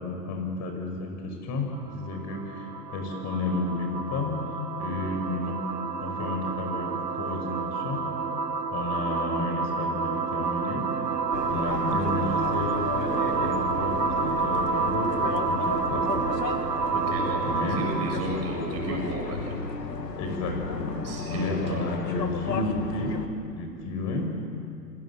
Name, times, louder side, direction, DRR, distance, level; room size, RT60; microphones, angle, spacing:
voice 1, 0.0-8.1 8.7-11.0 11.5-15.2 15.5-16.3 17.4-18.0 20.2-24.5, left 2 dB, 35° left, 4 dB, 5.9 m, -32 dB
sound 1, 1.7-18.4, right 4 dB, 85° right, 1.3 m, -29 dB
sound 2, 11.3-23.3, left 4 dB, 85° left, 1.9 m, -34 dB
voice 2, 16.9-19.6 21.0-21.9, right 2 dB, 30° right, 0 dB, 7.6 m, -33 dB
28.0 x 23.5 x 7.4 m, 2.4 s
figure-of-eight pair, 95°, 48 cm